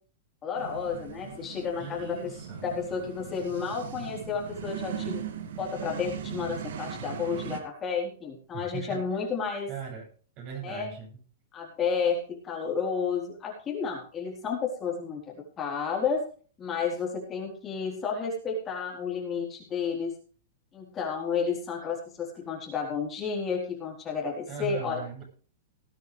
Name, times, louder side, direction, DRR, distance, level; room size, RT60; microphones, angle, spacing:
voice 1, 0.4-2.3 2.6-5.2 5.6-9.7 10.6-10.9 11.5-16.3 16.6-20.1 20.7-25.0, left 6 dB, 20° left, -1 dB, 4.0 m, -31 dB
sound 1, 0.6-7.6, right 8 dB, 75° right, 2.7 m, -39 dB
voice 2, 1.8-2.7 8.5-9.0 9.7-10.1 10.4-11.1 24.5-25.2, right 7 dB, 40° right, 1 dB, 7.6 m, -39 dB
19.5 x 10.0 x 3.4 m, 0.41 s
hypercardioid pair, 150°, 0 cm